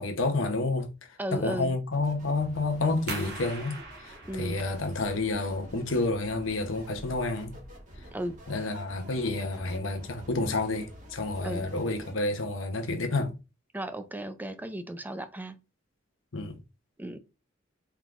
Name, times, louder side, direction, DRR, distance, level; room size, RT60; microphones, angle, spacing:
voice 1, 0.0-7.5 8.5-13.3 16.3-16.6, left 2 dB, 75° left, 0.9 m, -30 dB
voice 2, 1.2-1.8 4.3-4.6 8.1-8.4 11.4-11.7 13.7-15.6 17.0-17.2, right 1 dB, 10° right, 0.4 m, -35 dB
sound 1, 1.9-12.1, equal, 40° right, 1.4 m, -49 dB
sound 2, 3.1-8.4, right 3 dB, 55° right, 1.2 m, -44 dB
4.6 x 3.6 x 2.5 m
head